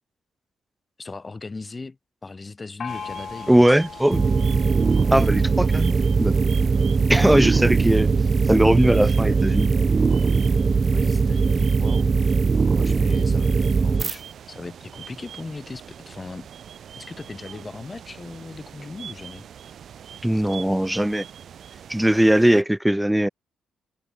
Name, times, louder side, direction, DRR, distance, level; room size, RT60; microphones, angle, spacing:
voice 1, 1.0-4.0 7.2-7.6 10.9-12.1 12.8-16.5 16.9-19.5 20.3-20.4, left 3 dB, 25° left, 4.8 m, -38 dB
Gong, 2.8-6.3, left 7 dB, 50° left, 6.9 m, -40 dB
sound 1, 2.9-22.6, right 8 dB, 60° right, 4.7 m, -43 dB
voice 2, 3.5-4.2 5.1-6.4 7.1-8.1 8.5-9.7 20.2-21.2 21.9-23.3, right 1 dB, 5° right, 1.0 m, -19 dB
sound 2, 4.1-14.2, right 4 dB, 35° right, 0.8 m, -20 dB
cardioid pair, 90°, 0 cm